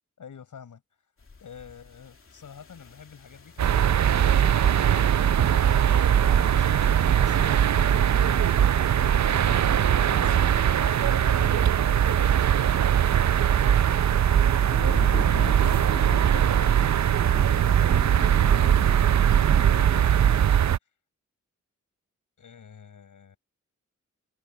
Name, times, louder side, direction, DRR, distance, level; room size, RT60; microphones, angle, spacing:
voice 1, 0.2-0.8 1.4-5.1 6.2-11.7 12.5-20.4 22.4-23.4, left 7 dB, 85° left, 7.3 m, -49 dB
sound 1, 1.2-20.5, left 4 dB, 45° left, 2.5 m, -43 dB
sound 2, 3.6-20.8, right 9 dB, 65° right, 0.6 m, -21 dB
cardioid pair, 70°, 30 cm